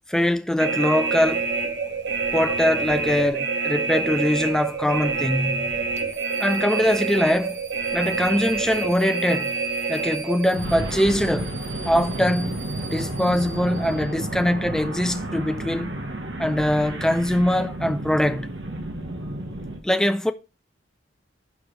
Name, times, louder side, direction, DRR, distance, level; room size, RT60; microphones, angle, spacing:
voice 1, 0.1-1.5 2.3-5.7 6.4-7.6 7.9-9.5 9.9-11.5 11.9-12.6 12.9-15.9 16.4-18.5 19.8-20.3, left 1 dB, 5° left, 0.4 m, -22 dB
sound 1, 0.6-19.8, right 3 dB, 70° right, 1.2 m, -28 dB
sound 2, 6.0-14.4, right 6 dB, 40° right, 0.6 m, -43 dB
6.0 x 4.8 x 5.1 m
head